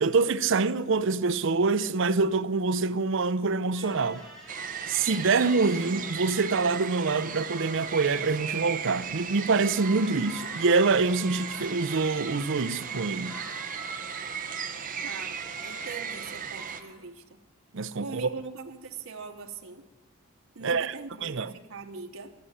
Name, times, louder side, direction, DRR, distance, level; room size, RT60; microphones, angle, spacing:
voice 1, 0.0-4.2 4.9-13.4 17.7-18.3 20.6-20.9 21.2-21.5, right 4 dB, 65° right, 0.6 m, -25 dB
sound 1, 3.7-9.3 9.6-17.0, right 1 dB, ahead, 3.8 m, -46 dB
sound 2, 4.5-16.8, right 7 dB, 40° right, 1.0 m, -36 dB
voice 2, 15.0-17.4 18.0-19.8 20.5-22.3, right 4 dB, 90° right, 1.1 m, -42 dB
14.0 x 7.8 x 9.7 m
head